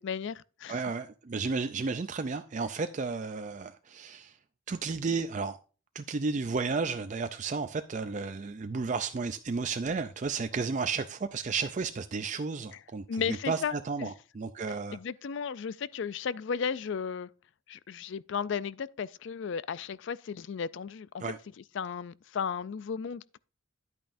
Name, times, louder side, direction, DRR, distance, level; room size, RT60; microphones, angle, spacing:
voice 1, 0.0-0.8 13.1-13.7 14.0-14.1 14.9-17.3 17.7-21.2 21.7-23.4, left 6 dB, 60° left, 0.4 m, -34 dB
voice 2, 0.7-4.4 4.7-5.6 5.9-15.0 21.2-21.4, right 4 dB, 35° right, 0.4 m, -33 dB
10.5 x 8.9 x 2.6 m
head